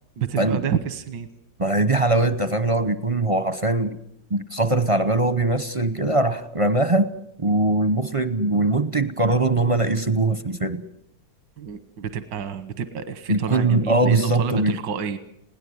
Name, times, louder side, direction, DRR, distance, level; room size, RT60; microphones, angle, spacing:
voice 1, 0.2-1.3 11.6-15.2, right 7 dB, 85° right, 13 dB, 1.8 m, -29 dB
voice 2, 1.6-4.0 4.3-7.1 7.4-10.8 13.3-14.7, right 2 dB, 35° right, 13 dB, 0.5 m, -21 dB
21.5 x 17.5 x 9.7 m, 0.73 s
omnidirectional pair, 1.9 m